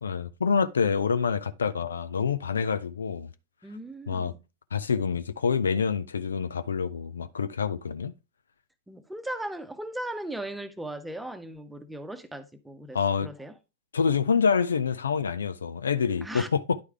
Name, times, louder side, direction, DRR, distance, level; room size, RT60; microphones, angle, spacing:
voice 1, 0.0-3.3 4.1-4.3 4.7-8.1 12.9-13.3 13.9-16.8, left 6 dB, 70° left, 0.5 m, -27 dB
voice 2, 3.6-4.4 8.9-13.5 16.2-16.5, right 1 dB, 5° right, 1.0 m, -38 dB
10.5 x 4.8 x 3.4 m
figure-of-eight pair, 90°, 0 cm